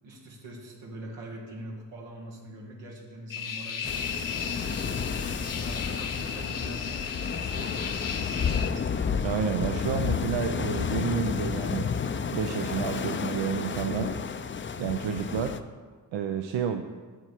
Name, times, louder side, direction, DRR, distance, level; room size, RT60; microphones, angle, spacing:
voice 1, 0.0-5.1 5.5-8.8, right 1 dB, 90° right, -1 dB, 1.6 m, -43 dB
sound 1, 3.3-8.7, left 7 dB, 45° left, 0.9 m, -35 dB
sound 2, 3.8-15.6, left 6 dB, 30° left, 0.4 m, -31 dB
voice 2, 9.2-11.9 12.3-14.1 14.8-15.6 16.1-16.8, right 7 dB, 75° right, 6 dB, 0.6 m, -30 dB
7.3 x 7.0 x 4.5 m, 1.5 s
supercardioid pair, 50°, 45 cm